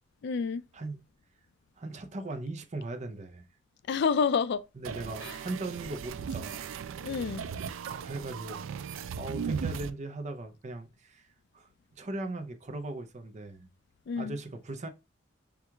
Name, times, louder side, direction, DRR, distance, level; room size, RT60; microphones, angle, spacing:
voice 1, 0.2-0.6 3.9-4.6 5.2-5.3 7.0-7.4 14.1-14.4, left 6 dB, 60° left, 0.3 m, -28 dB
voice 2, 1.8-3.5 4.8-6.7 7.9-8.7 9.2-11.3 11.5-13.7 14.2-14.9, right 2 dB, 35° right, 0.5 m, -39 dB
sound 1, 4.8-9.9, right 6 dB, 85° right, 0.3 m, -37 dB
4.5 x 2.4 x 3.4 m
head